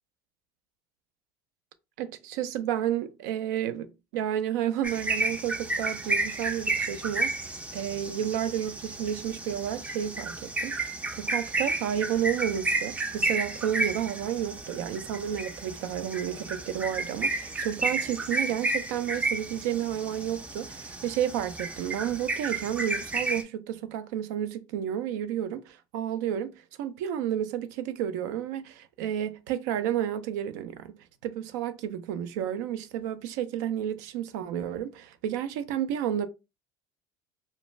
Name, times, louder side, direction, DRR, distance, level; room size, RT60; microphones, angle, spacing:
voice 1, 2.0-30.9 31.2-36.3, right 10 dB, 80° right, 0.4 m, -31 dB
sound 1, 4.8-23.4, right 2 dB, 15° right, 0.4 m, -32 dB
2.4 x 2.2 x 3.1 m
supercardioid pair, 100°, 9 cm